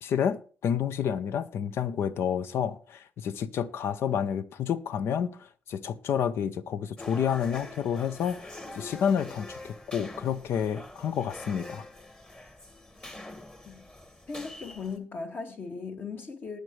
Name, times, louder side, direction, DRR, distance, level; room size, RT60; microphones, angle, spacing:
voice 1, 0.0-11.8, left 8 dB, 65° left, 0.8 m, -29 dB
sound 1, 7.0-15.0, left 2 dB, 25° left, 2.0 m, -45 dB
voice 2, 14.3-16.6, left 4 dB, 45° left, 2.5 m, -38 dB
19.5 x 6.6 x 3.3 m
supercardioid pair, 55°, 5 cm